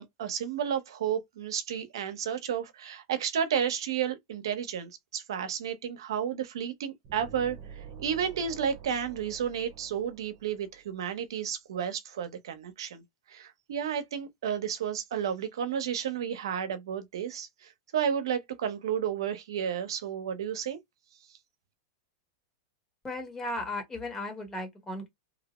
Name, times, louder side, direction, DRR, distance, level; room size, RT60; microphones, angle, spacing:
voice 1, 0.0-13.0 13.3-20.8, right 8 dB, 80° right, 0.7 m, -32 dB
sound 1, 7.0-10.9, right 7 dB, 40° right, 0.9 m, -47 dB
voice 2, 23.0-25.1, left 1 dB, 15° left, 1.0 m, -36 dB
2.7 x 2.1 x 2.9 m
hypercardioid pair, 130°, 2 cm